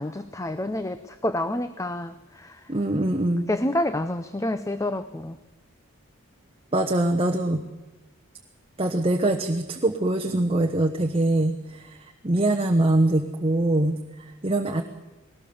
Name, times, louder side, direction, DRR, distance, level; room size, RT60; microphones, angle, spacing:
voice 1, 0.0-2.7 3.5-5.4, left 1 dB, 15° left, 11 dB, 0.6 m, -28 dB
voice 2, 2.7-3.5 6.7-7.6 8.8-14.8, right 1 dB, 25° right, 4 dB, 1.1 m, -23 dB
21.0 x 18.0 x 7.0 m, 1.1 s
head